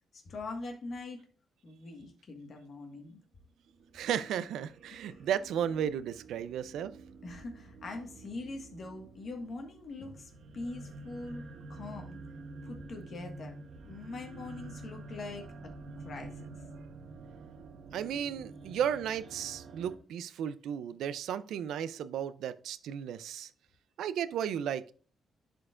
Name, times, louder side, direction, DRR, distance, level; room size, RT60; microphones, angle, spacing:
voice 1, 0.1-1.2 1.6-3.2 5.0-5.2 7.2-12.2 12.6-13.6 13.9-16.4, left 3 dB, 50° left, 1.5 m, -43 dB
sound 1, 3.7-20.0, right 3 dB, 65° right, 0.9 m, -48 dB
voice 2, 3.9-6.9 17.9-23.5 24.0-24.9, right 9 dB, 85° right, 0.4 m, -34 dB
11.0 x 4.5 x 2.4 m
cardioid pair, 100°, 0 cm